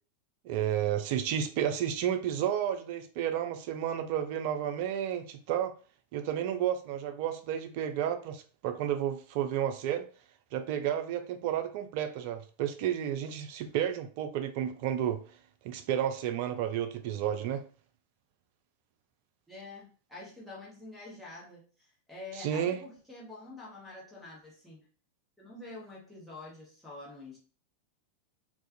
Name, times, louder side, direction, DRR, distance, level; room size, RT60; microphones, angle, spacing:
voice 1, 0.4-5.7 6.1-10.1 10.5-15.2 15.6-17.6 22.4-22.8, right 10 dB, 45° right, 8 dB, 0.3 m, -31 dB
voice 2, 19.5-24.8 25.4-27.4, left 2 dB, ahead, -4 dB, 1.1 m, -47 dB
2.4 x 2.3 x 2.5 m, 0.39 s
figure-of-eight pair, 90°, 0 cm